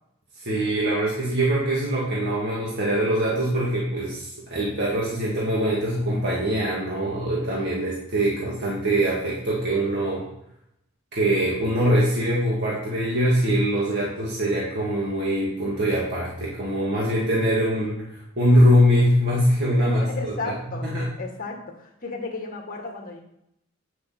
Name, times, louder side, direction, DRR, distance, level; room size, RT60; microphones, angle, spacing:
voice 1, 0.4-10.3 11.1-20.5 20.8-21.1, equal, 55° right, -6 dB, 2.0 m, -23 dB
voice 2, 19.7-20.8 21.2-23.2, left 3 dB, 40° left, 1 dB, 1.8 m, -34 dB
9.3 x 6.4 x 4.2 m, 0.80 s
head